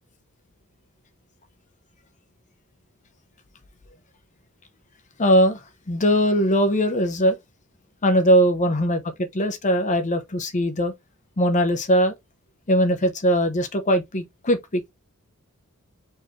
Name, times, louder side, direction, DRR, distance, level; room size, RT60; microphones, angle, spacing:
voice 1, 5.2-5.6 5.9-7.4 8.0-10.9 11.4-12.1 12.7-14.8, equal, 35° left, 0.8 m, -20 dB
4.5 x 3.2 x 3.1 m
head